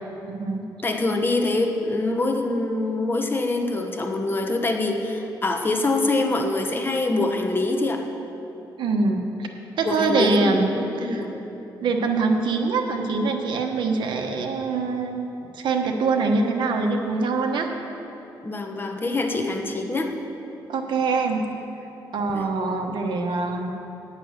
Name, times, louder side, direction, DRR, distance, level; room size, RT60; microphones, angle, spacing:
voice 1, 0.3-0.7 8.8-9.5 9.8-10.7 11.0-11.2 11.8-17.7 20.7-21.5 22.1-23.7, right 4 dB, 70° right, 3 dB, 1.1 m, -24 dB
voice 2, 0.8-8.0 9.8-11.5 18.4-20.1 22.3-22.5, left 2 dB, 25° left, 3 dB, 1.1 m, -25 dB
8.9 x 8.8 x 6.6 m, 3.0 s
cardioid pair, 100°, 8 cm